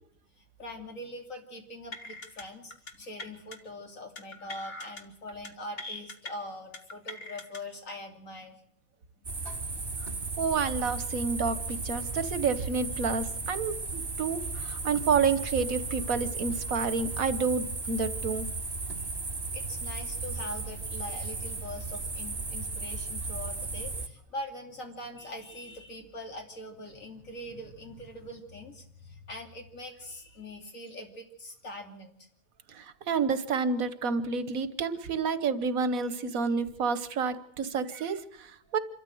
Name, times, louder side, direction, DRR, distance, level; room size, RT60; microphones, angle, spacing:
voice 1, 0.3-8.6 9.2-9.3 19.5-32.3, left 1 dB, 70° left, 3 dB, 3.3 m, -43 dB
sound 1, 1.9-2.4 2.7-2.9 3.2-3.6 4.2-5.0 5.3-5.5 5.8-6.3 6.7-7.6, left 2 dB, 45° left, 1.9 m, -41 dB
sound 2, 9.2-24.1, right 3 dB, 40° right, 2.4 m, -35 dB
voice 2, 10.4-18.5 32.7-38.8, right 5 dB, 85° right, 13 dB, 1.6 m, -29 dB
26.5 x 13.5 x 7.8 m, 0.72 s
omnidirectional pair, 1.4 m